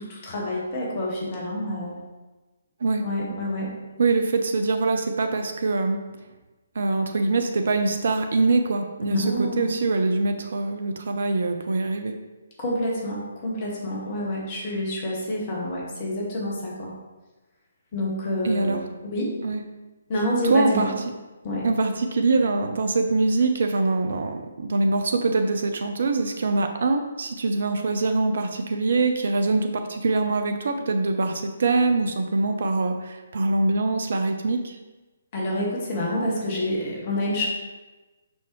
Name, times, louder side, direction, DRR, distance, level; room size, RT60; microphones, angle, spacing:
voice 1, 0.0-2.0 3.0-3.7 9.1-9.7 12.6-16.9 17.9-18.8 19.1-19.3 20.1-20.9 21.4-21.7 35.3-37.5, left 1 dB, 30° left, -3 dB, 1.7 m, -28 dB
voice 2, 4.0-6.0 6.7-12.1 18.4-18.8 19.4-19.6 20.4-20.9 21.6-34.8, right 3 dB, 50° right, 6 dB, 0.5 m, -23 dB
6.2 x 5.4 x 3.1 m, 1.2 s
figure-of-eight pair, 135°, 0 cm